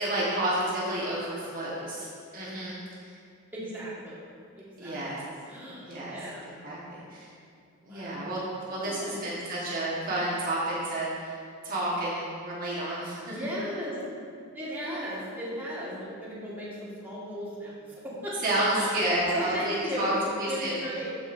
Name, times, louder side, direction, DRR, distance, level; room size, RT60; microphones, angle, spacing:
voice 1, 0.0-3.2 4.8-5.2 5.9-6.1 6.6-7.3 7.8-11.4 11.6-13.4 18.4-20.1 20.4-20.8, right 1 dB, 40° right, -7 dB, 1.4 m, -30 dB
voice 2, 3.5-4.2 4.6-5.0 5.5-6.5 7.8-8.3 8.8-9.3 13.3-14.0 14.5-17.8 18.0-21.1, equal, 10° right, -8 dB, 1.7 m, -36 dB
13.0 x 5.0 x 2.6 m, 2.3 s
head